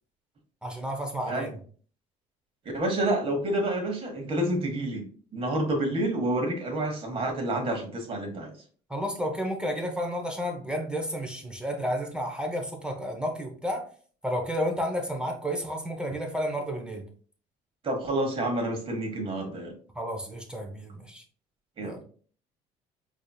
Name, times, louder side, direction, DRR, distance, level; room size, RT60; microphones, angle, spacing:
voice 1, 0.6-1.6 8.9-13.8 14.2-17.0 20.0-21.2 21.8-22.0, equal, 5° right, 0.7 m, -31 dB
voice 2, 2.7-5.0 5.3-8.5 17.8-19.7 21.8-22.0, right 1 dB, 40° right, 1.3 m, -28 dB
4.8 x 2.8 x 2.3 m
cardioid pair, 110°, 15 cm